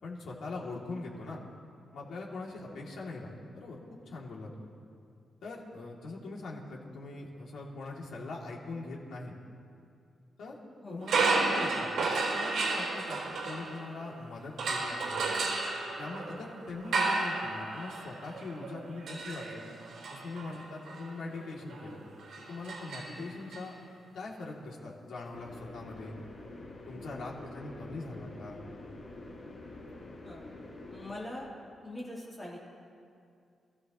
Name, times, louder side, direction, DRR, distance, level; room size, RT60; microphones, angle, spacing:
voice 1, 0.0-1.4 1.9-4.7 5.4-9.3 10.4-10.6 10.9-13.2 13.5-15.2 16.0-19.8 20.1-22.0 22.5-23.7 24.1-26.2 26.9-28.6, left 3 dB, 70° left, -3 dB, 2.7 m, -42 dB
voice 2, 10.8-11.4 30.2-30.4 30.9-31.5 31.8-32.6, left 1 dB, 15° left, -6 dB, 3.7 m, -43 dB
sound 1, 11.0-14.1 14.6-23.6, right 3 dB, 70° right, 4.1 m, -33 dB
sound 2, 25.3-31.1, left 2 dB, 40° left, 3.1 m, -47 dB
26.5 x 14.5 x 3.1 m, 2.4 s
wide cardioid pair, 165°, 0 cm